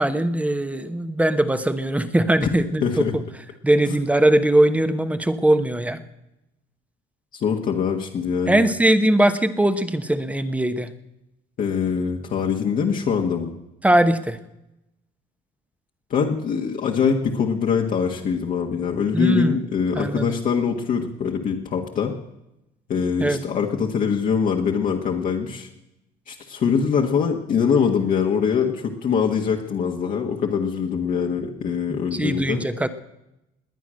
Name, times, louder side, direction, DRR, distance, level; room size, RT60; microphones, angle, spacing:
voice 1, 0.0-3.1 3.6-6.0 8.5-10.9 13.8-14.4 19.1-19.6 19.9-20.4 23.2-23.4 31.9-32.9, right 1 dB, 10° right, 10 dB, 1.1 m, -20 dB
voice 2, 2.8-3.1 3.9-4.0 7.4-8.6 11.6-13.5 16.1-22.1 22.9-25.7 26.3-32.6, left 6 dB, 55° left, 0 dB, 1.6 m, -23 dB
20.0 x 9.3 x 6.4 m, 0.89 s
cardioid pair, 110°, 17 cm